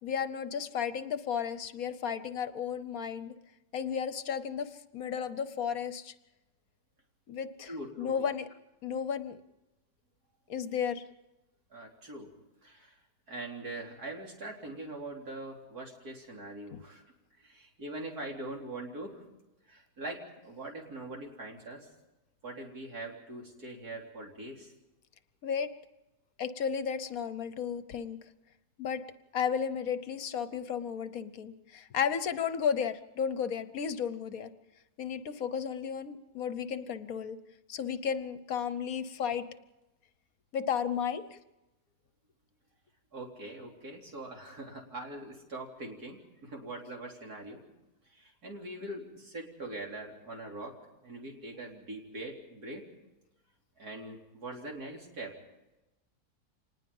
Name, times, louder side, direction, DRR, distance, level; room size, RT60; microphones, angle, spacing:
voice 1, 0.0-3.4 3.7-6.1 7.3-7.7 8.0-8.5 8.8-9.4 10.5-11.0 16.7-16.8 25.4-25.7 26.4-28.2 28.8-29.0 29.3-34.5 35.0-37.4 37.7-39.5 40.5-41.2, left 7 dB, 65° left, 12 dB, 1.3 m, -33 dB
voice 2, 7.6-8.3 11.7-12.3 12.6-13.0 13.3-17.0 17.4-19.2 19.7-21.9 22.4-24.7 43.1-47.6 48.1-50.7 51.0-52.8 53.8-55.3, right 2 dB, 70° right, 0 dB, 4.1 m, -42 dB
25.5 x 20.0 x 5.5 m, 0.99 s
omnidirectional pair, 1.7 m